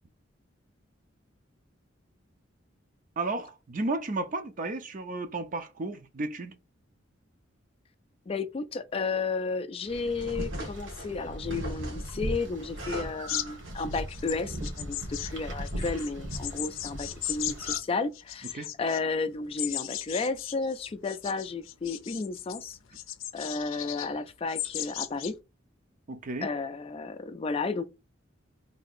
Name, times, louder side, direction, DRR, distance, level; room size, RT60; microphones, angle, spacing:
voice 1, 3.2-6.5 18.5-18.7 26.1-26.5, right 2 dB, 40° right, 0.6 m, -33 dB
voice 2, 8.3-22.8 23.3-25.3 26.4-27.8, left 4 dB, 30° left, 0.3 m, -33 dB
sound 1, 9.9-17.8, equal, 65° right, 1.5 m, -38 dB
sound 2, 10.2-11.1 11.5-13.7, right 1 dB, 85° right, 1.9 m, -43 dB
sound 3, 13.3-17.8 18.1-19.0 19.6-22.6 22.9-24.1 24.5-25.3, left 13 dB, 90° left, 0.5 m, -36 dB
3.4 x 2.8 x 4.1 m
head